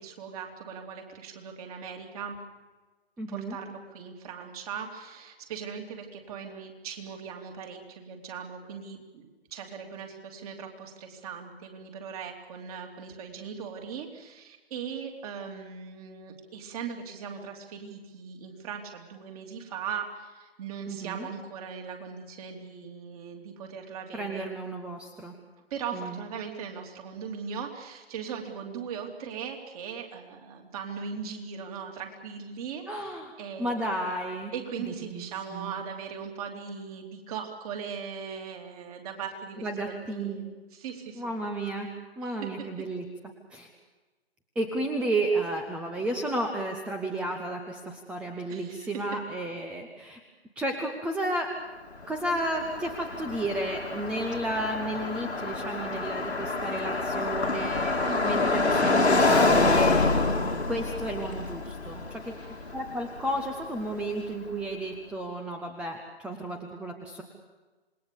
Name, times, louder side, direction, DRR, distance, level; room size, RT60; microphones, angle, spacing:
voice 1, 0.0-2.4 3.3-24.5 25.7-33.8 34.5-41.4 42.2-42.7 48.5-48.9 58.1-58.5 62.4-62.6, right 6 dB, 35° right, 2 dB, 3.3 m, -39 dB
voice 2, 3.2-3.6 20.9-21.3 24.1-25.3 25.9-26.2 32.9-33.3 33.6-34.5 34.8-35.3 35.5-35.8 39.6-40.4 41.2-41.9 42.2-43.1 43.5-43.7 44.6-50.2 50.6-51.5 52.1-58.0 58.2-60.0 60.7-62.3 62.7-67.2, right 1 dB, 5° right, 4 dB, 0.8 m, -32 dB
Car passing by, 52.0-64.0, left 3 dB, 85° left, 2.4 m, -27 dB
27.5 x 20.0 x 7.0 m, 1.3 s
figure-of-eight pair, 135°, 32 cm